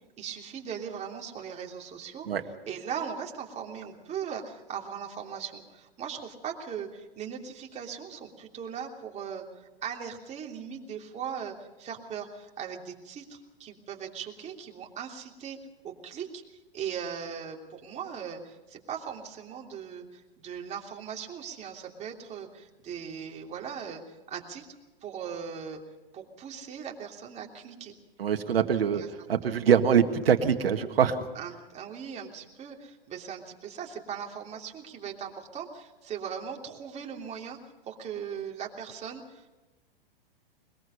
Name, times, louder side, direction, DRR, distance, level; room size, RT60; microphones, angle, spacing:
voice 1, 0.2-2.3 2.7-15.6 15.8-24.6 25.0-25.8 26.1-27.9 28.9-29.1 29.4-29.5 31.3-37.6 37.8-39.5, right 7 dB, 25° right, 1 dB, 3.1 m, -39 dB
voice 2, 28.2-29.0 29.3-31.2, right 7 dB, 75° right, 6 dB, 1.9 m, -23 dB
21.5 x 21.5 x 5.7 m, 1.1 s
hypercardioid pair, 115°, 29 cm